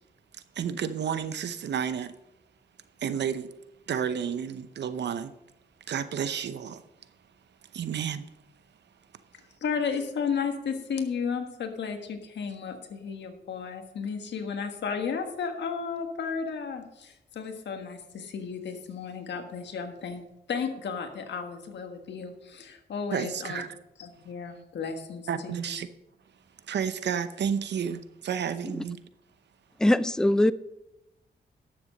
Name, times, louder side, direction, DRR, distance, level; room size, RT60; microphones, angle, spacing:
voice 1, 0.3-2.1 3.0-3.5 3.9-5.3 5.9-6.8 7.7-8.3 23.1-23.7 25.3-25.9 26.7-29.0, right 8 dB, 75° right, 0.8 m, -31 dB
voice 2, 9.6-20.2 20.5-23.6 24.0-25.7, left 6 dB, 80° left, 1.5 m, -33 dB
voice 3, 29.8-30.5, left 1 dB, 5° left, 0.4 m, -21 dB
12.0 x 7.0 x 5.2 m
cardioid pair, 65°, 18 cm